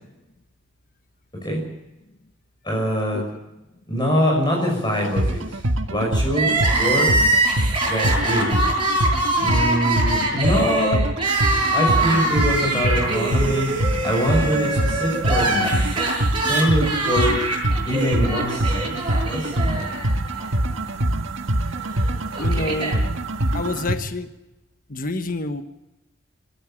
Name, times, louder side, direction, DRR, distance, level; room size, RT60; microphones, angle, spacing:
voice 1, 2.6-3.2 3.9-5.4 5.9-7.1 7.9-8.6 9.4-11.0 11.7-13.7 14.0-15.8 16.5-17.5 17.9-18.9 19.2-19.9, equal, 25° left, -1 dB, 6.1 m, -23 dB
sound 1, 5.0-24.0, right 1 dB, 80° right, 1.8 m, -24 dB
Crying sobbing, 6.3-20.5 20.7-20.8 21.8-23.0, right 2 dB, 25° right, 7.9 m, -23 dB
voice 2, 22.4-23.0 23.5-24.3 24.9-25.6, left 2 dB, 45° left, 8 dB, 1.3 m, -28 dB
27.5 x 13.5 x 8.8 m, 0.98 s
head